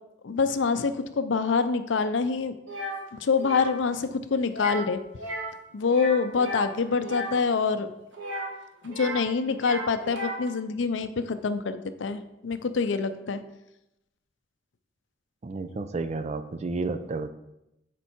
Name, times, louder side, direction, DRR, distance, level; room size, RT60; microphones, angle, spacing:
voice 1, 0.2-2.5 3.1-5.0 5.7-7.9 8.8-13.4, left 5 dB, 80° left, 11 dB, 0.5 m, -26 dB
sound 1, 2.7-3.0 3.4-3.7 4.5-4.9 5.2-5.6 5.8-7.4 8.1-9.3 9.5-10.5, right 1 dB, 85° right, 1.3 m, -35 dB
voice 2, 15.4-17.3, right 3 dB, 35° right, 11 dB, 0.4 m, -31 dB
7.0 x 4.5 x 4.4 m, 0.90 s
head